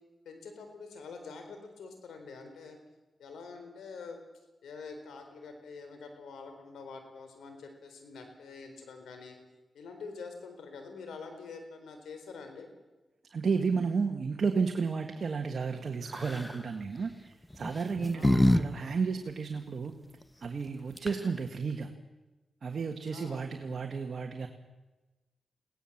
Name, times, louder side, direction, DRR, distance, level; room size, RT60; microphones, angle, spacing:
voice 1, 0.3-2.8 3.2-4.2 4.6-9.4 9.7-12.7 18.1-18.6 23.1-23.6, left 4 dB, 90° left, 6 dB, 3.9 m, -46 dB
voice 2, 13.3-19.9 20.4-21.9 22.6-24.5, right 5 dB, 60° right, 4 dB, 1.7 m, -32 dB
sound 1, 16.1-16.6 17.5-18.6 18.9-19.0 20.7-20.8 21.0-21.4, left 1 dB, 15° left, 1.3 m, -26 dB
22.0 x 17.5 x 7.3 m, 1.1 s
cardioid pair, 55°, 0 cm